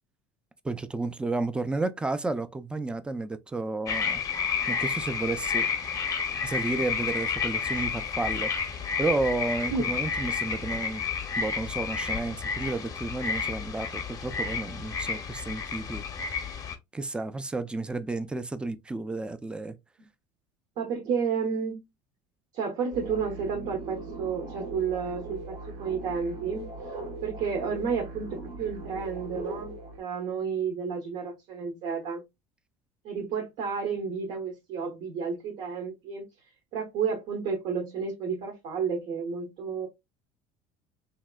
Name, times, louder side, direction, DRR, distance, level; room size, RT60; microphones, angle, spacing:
voice 1, 0.6-4.2 4.7-5.7 6.4-8.5 9.0-11.0 11.4-16.0 16.9-19.8, right 3 dB, 5° right, 0.3 m, -32 dB
sound 1, 3.9-16.8, left 6 dB, 25° left, 0.6 m, -31 dB
voice 2, 20.8-21.9 22.5-26.7 27.2-32.2 33.0-36.2 36.7-39.9, right 6 dB, 65° right, 0.9 m, -31 dB
sound 2, 22.9-30.0, right 2 dB, 85° right, 1.2 m, -39 dB
3.1 x 2.8 x 2.2 m
cardioid pair, 120°, 13 cm